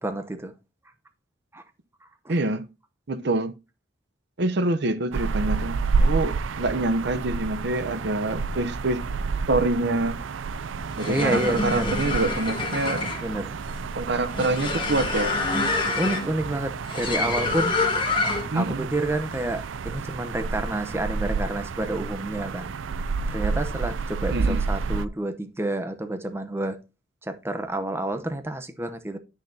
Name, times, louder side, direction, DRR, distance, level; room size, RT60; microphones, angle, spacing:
voice 1, 0.0-0.5 1.5-1.6 2.2-2.4 11.1-11.9 13.2-13.6 16.0-17.8 18.5-22.7 23.3-26.8 27.2-29.2, right 1 dB, 15° right, 0.8 m, -29 dB
voice 2, 2.3-2.7 3.1-3.5 4.4-9.0 9.5-10.2 11.0-13.1 14.0-15.3 18.5-18.9 24.3-24.6, right 2 dB, 60° right, 0.8 m, -26 dB
sound 1, 5.1-25.1, right 4 dB, 80° right, 0.4 m, -30 dB
sound 2, 10.8-18.6, left 3 dB, 25° left, 1.7 m, -27 dB
10.5 x 6.5 x 2.7 m
head